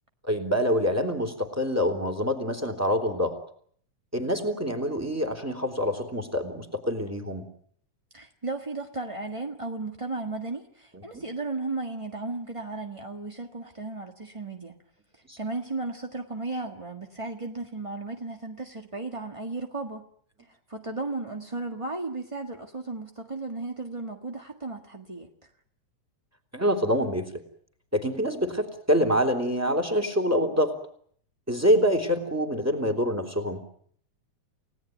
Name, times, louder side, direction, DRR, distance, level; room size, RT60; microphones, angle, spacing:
voice 1, 0.3-3.4 4.1-7.4 11.1-11.2 15.3-15.4 26.5-27.3 27.9-30.7 31.5-33.6, equal, 5° right, 6 dB, 3.0 m, -26 dB
voice 2, 8.1-14.8 15.4-20.1 20.7-25.3, right 3 dB, 25° right, 4 dB, 0.6 m, -35 dB
30.0 x 17.5 x 9.3 m, 0.63 s
omnidirectional pair, 3.5 m